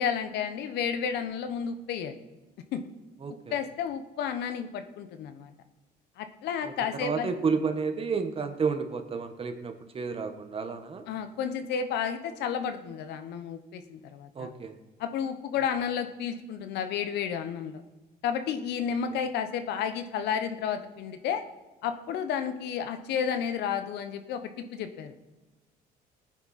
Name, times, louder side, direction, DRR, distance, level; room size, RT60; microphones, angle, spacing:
voice 1, 0.0-2.2 2.7-2.8 3.5-5.5 6.2-7.3 11.1-14.5 15.0-17.8 18.2-21.4 21.8-25.1, left 7 dB, 80° left, 8 dB, 1.2 m, -31 dB
voice 2, 3.2-3.6 6.6-6.7 7.0-11.0 14.3-14.8, right 5 dB, 35° right, 7 dB, 1.5 m, -31 dB
18.0 x 9.8 x 4.3 m, 1.1 s
cardioid pair, 110°, 17 cm